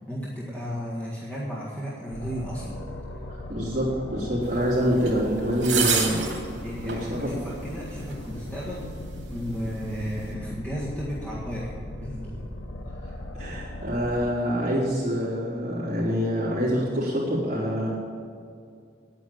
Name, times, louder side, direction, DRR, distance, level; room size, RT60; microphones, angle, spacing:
voice 1, 0.1-2.8 5.6-8.9 9.3-12.5, equal, 10° left, -7 dB, 1.7 m, -34 dB
sound 1, 2.1-14.3, left 1 dB, 90° left, 1.1 m, -38 dB
voice 2, 3.5-6.2 6.8-7.4 13.3-17.9, equal, 40° right, -12 dB, 3.5 m, -26 dB
sound 2, 5.1-5.2 5.6-6.4 6.9-7.0 8.1-8.2, right 6 dB, 80° right, 2.7 m, -25 dB
9.6 x 9.2 x 9.1 m, 2.3 s
head